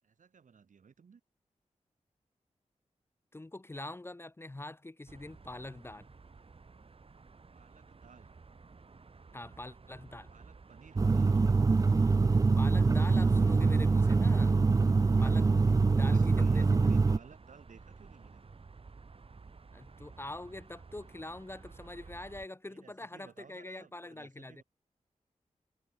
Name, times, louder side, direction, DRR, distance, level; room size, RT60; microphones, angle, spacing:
voice 1, 0.0-1.2 7.5-8.4 10.3-11.6 15.7-18.5 22.6-24.6, right 6 dB, 85° right, 6.4 m, -57 dB
voice 2, 3.3-6.1 9.3-10.3 12.6-14.6 15.1-15.5 15.9-17.0 19.7-24.6, left 2 dB, 20° left, 0.7 m, -44 dB
sound 1, 5.1-22.5, right 4 dB, 50° right, 1.9 m, -53 dB
sound 2, 11.0-17.2, right 4 dB, 25° right, 0.4 m, -24 dB
wide cardioid pair, 80°, 13 cm